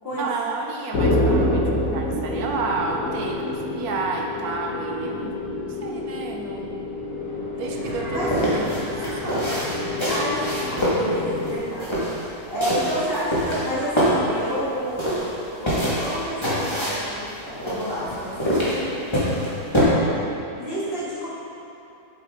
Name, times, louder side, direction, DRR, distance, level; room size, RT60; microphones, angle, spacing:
voice 1, 0.2-5.4 5.7-6.9 7.6-9.6, right 3 dB, 75° right, 2 dB, 1.2 m, -31 dB
sound 1, 0.9-11.6, left 1 dB, 60° left, 1.5 m, -27 dB
sound 2, 7.8-12.7, right 1 dB, 25° right, 1.7 m, -38 dB
sound 3, 8.2-19.8, equal, 20° left, 1.9 m, -25 dB
voice 2, 10.1-11.9 12.2-19.0 20.2-20.3 20.5-21.3, equal, 35° left, -9 dB, 2.4 m, -30 dB
7.9 x 7.8 x 3.8 m, 2.9 s
omnidirectional pair, 1.6 m